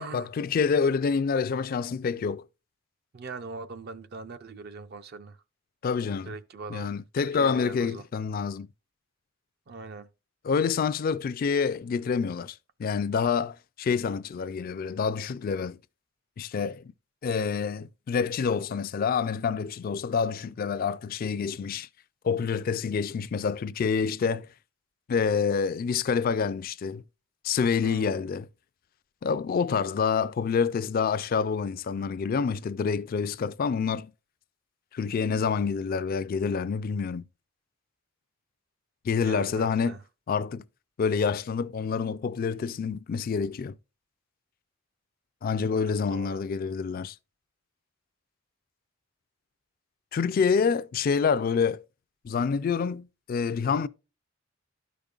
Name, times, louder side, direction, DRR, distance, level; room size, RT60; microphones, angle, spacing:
voice 1, 0.0-2.4 5.8-6.3 6.7-8.7 10.4-15.8 16.4-16.9 17.2-21.9 22.2-24.5 25.1-27.0 27.4-28.5 29.2-34.1 34.9-37.2 39.0-39.9 40.3-40.6 41.0-43.8 45.4-47.1 50.1-51.8 52.2-53.9, left 6 dB, 45° left, 0.3 m, -27 dB
voice 2, 3.1-5.4 6.3-8.0 9.7-10.1 27.8-28.2 39.2-40.0 45.7-46.4, right 4 dB, 50° right, 0.4 m, -41 dB
12.5 x 5.1 x 2.3 m
head